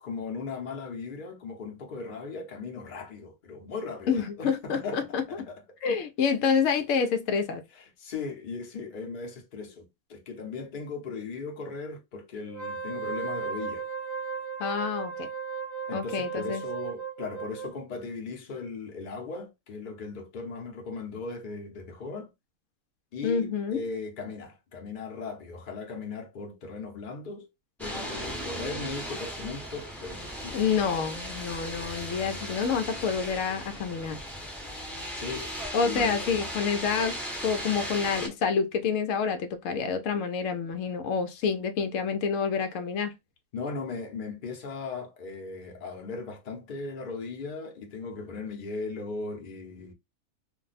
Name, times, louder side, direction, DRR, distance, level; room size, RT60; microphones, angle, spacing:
voice 1, 0.0-5.8 7.7-13.9 15.9-22.3 23.1-27.5 27.8-30.7 35.1-35.5 35.8-36.2 43.5-49.9, left 4 dB, 45° left, 0.8 m, -38 dB
voice 2, 4.1-5.2 5.8-7.6 14.6-15.3 15.9-16.6 23.2-23.8 30.5-34.2 35.7-43.1, left 6 dB, 75° left, 0.9 m, -28 dB
Wind instrument woodwind instrument, 12.5-17.7, right 6 dB, 60° right, 0.9 m, -35 dB
sound 1, 27.8-38.3, equal, ahead, 0.6 m, -37 dB
2.5 x 2.2 x 4.0 m
omnidirectional pair, 1.4 m